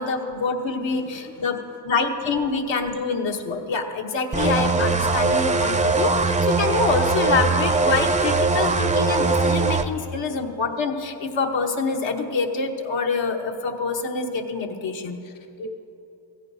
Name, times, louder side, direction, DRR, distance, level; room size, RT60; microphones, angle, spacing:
voice 1, 0.0-1.6 1.8-15.2, left 4 dB, 85° left, 3 dB, 1.1 m, -26 dB
voice 2, 0.9-1.5 10.0-10.1 15.2-15.7, equal, 50° left, 6 dB, 0.7 m, -42 dB
sound 1, 4.3-9.8, right 3 dB, 15° right, 0.4 m, -21 dB
16.0 x 15.0 x 2.7 m, 2.8 s
cardioid pair, 100°, 44 cm